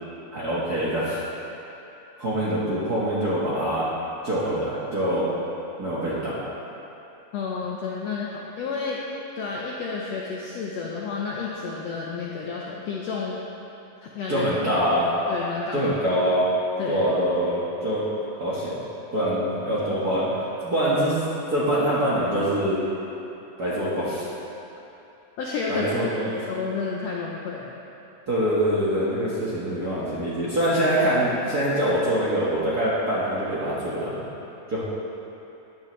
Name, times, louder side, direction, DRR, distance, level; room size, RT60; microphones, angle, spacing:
voice 1, 0.3-1.2 2.2-3.9 4.2-5.3 5.8-6.4 14.3-15.1 15.7-16.4 16.9-18.1 18.4-18.7 19.1-21.2 21.5-22.8 23.6-24.3 25.7-26.4 28.3-34.2 34.7-34.8, equal, 45° right, -9 dB, 1.3 m, -24 dB
voice 2, 7.3-9.0 9.3-13.4 14.0-14.5 15.3-15.9 16.8-17.0 25.4-25.9 26.5-27.7, left 5 dB, 75° left, -3 dB, 1.5 m, -31 dB
14.5 x 9.5 x 3.2 m, 2.9 s
omnidirectional pair, 3.8 m